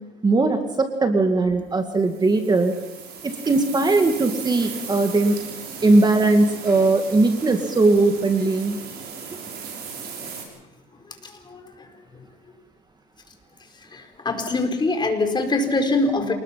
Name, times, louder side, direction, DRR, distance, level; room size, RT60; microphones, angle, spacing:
voice 1, 0.2-2.7 3.2-5.4 5.8-8.8, right 2 dB, 25° right, 6 dB, 2.1 m, -19 dB
Wheat in the Wind, 2.0-10.4, right 6 dB, 70° right, 7.1 m, -37 dB
voice 2, 13.9-16.3, left 2 dB, 25° left, 5 dB, 4.5 m, -23 dB
28.0 x 20.0 x 5.8 m, 1.1 s
cardioid pair, 110°, 17 cm